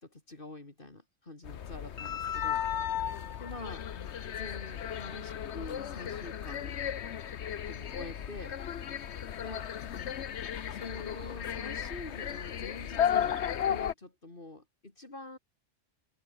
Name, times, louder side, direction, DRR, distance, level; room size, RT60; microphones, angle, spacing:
voice 1, 0.0-2.9 3.4-3.9 4.3-6.8 7.7-8.6 9.4-10.3 10.7-13.4 13.6-15.4, left 2 dB, 50° left, 3.3 m, -46 dB
sound 1, 1.4-13.9, left 9 dB, 70° left, 1.2 m, -35 dB
sound 2, 8.1-13.5, right 2 dB, 50° right, 4.0 m, -63 dB
open air
omnidirectional pair, 1.2 m